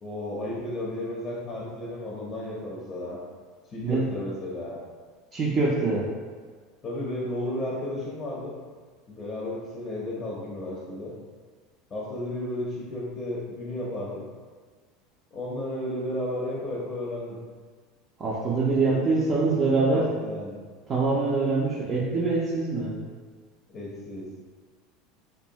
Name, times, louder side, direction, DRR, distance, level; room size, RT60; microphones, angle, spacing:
voice 1, 0.0-3.2 3.7-4.8 6.8-8.5 9.1-11.1 11.9-14.2 15.3-17.4 18.4-18.5 18.8-19.0 19.3-20.6 23.7-24.2, left 1 dB, 30° left, -5 dB, 0.6 m, -33 dB
voice 2, 5.3-6.1 18.2-20.1 20.9-22.9, right 3 dB, 35° right, -5 dB, 0.4 m, -24 dB
2.5 x 2.3 x 2.7 m, 1.5 s
hypercardioid pair, 95°, 0 cm